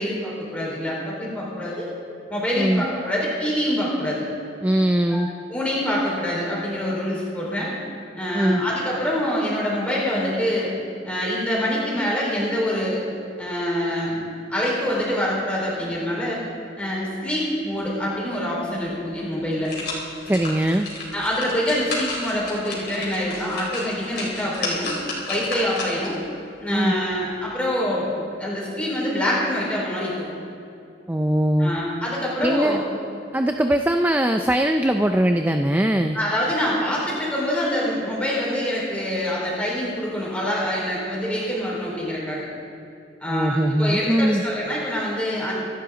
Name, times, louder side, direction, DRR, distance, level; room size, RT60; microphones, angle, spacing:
voice 1, 0.0-1.9 2.3-4.2 5.1-5.2 5.5-7.7 8.2-10.7 11.0-13.0 13.4-14.2 14.5-16.4 16.8-19.7 21.1-24.9 25.3-26.2 26.6-30.3 31.6-32.9 36.1-42.5 43.2-45.5, equal, 5° left, -6 dB, 4.5 m, -25 dB
voice 2, 4.6-5.3 8.3-8.6 20.3-20.9 26.7-26.9 31.1-31.7 32.4-32.8 33.3-36.2 43.3-44.4, right 1 dB, 10° right, 6 dB, 0.4 m, -21 dB
sound 1, 18.8-18.9 19.3-26.2 26.6-26.7, left 2 dB, 55° left, 3.9 m, -32 dB
25.0 x 12.0 x 3.9 m, 2.5 s
head